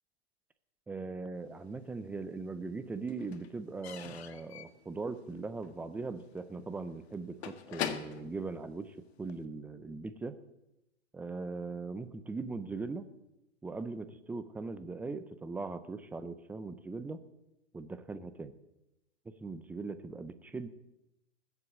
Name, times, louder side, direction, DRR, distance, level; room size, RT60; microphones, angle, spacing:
voice 1, 0.9-10.4 11.1-13.1 13.6-17.2 17.7-18.5 19.4-20.7, right 3 dB, 5° right, 11 dB, 0.5 m, -40 dB
Slam / Squeak / Wood, 1.6-2.4 2.7-9.4, left 9 dB, 60° left, 1.6 m, -44 dB
20.0 x 8.1 x 7.2 m, 0.91 s
hypercardioid pair, 140°, 35 cm